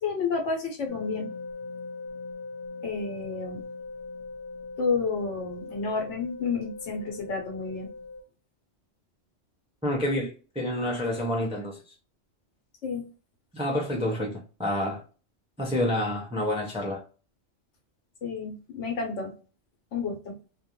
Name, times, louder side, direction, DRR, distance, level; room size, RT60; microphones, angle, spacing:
voice 1, 0.0-1.3 2.8-3.6 4.8-7.9 12.8-13.1 18.2-19.3 19.9-20.4, left 4 dB, 75° left, 1.1 m, -30 dB
sound 1, 0.9-8.2, left 3 dB, 55° left, 0.7 m, -40 dB
voice 2, 9.8-11.8 13.5-15.0 15.6-17.0, left 1 dB, 10° right, 0.3 m, -28 dB
2.5 x 2.2 x 2.8 m
omnidirectional pair, 1.2 m